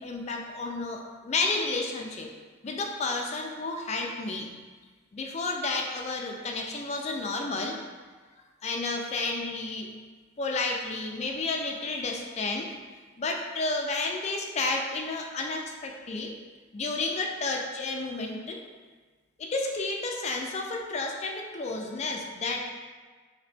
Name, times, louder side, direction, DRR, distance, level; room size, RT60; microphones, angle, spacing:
voice 1, 0.0-2.3 2.6-4.5 5.1-7.8 8.6-9.9 10.4-12.7 13.2-16.3 16.7-18.6 19.4-22.7, left 3 dB, 30° left, 1 dB, 0.3 m, -31 dB
2.9 x 2.8 x 3.3 m, 1.4 s
head